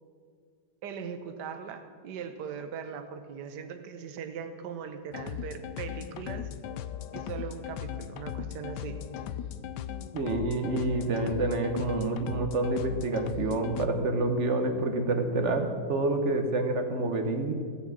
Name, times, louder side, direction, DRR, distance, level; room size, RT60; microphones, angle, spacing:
voice 1, 0.8-6.5 7.1-9.0, right 7 dB, 70° right, 8 dB, 1.5 m, -40 dB
sound 1, 5.1-13.9, left 10 dB, 75° left, 1.1 m, -38 dB
voice 2, 10.1-17.5, right 2 dB, 45° right, 6 dB, 1.2 m, -28 dB
16.0 x 7.1 x 7.5 m, 2.1 s
omnidirectional pair, 2.0 m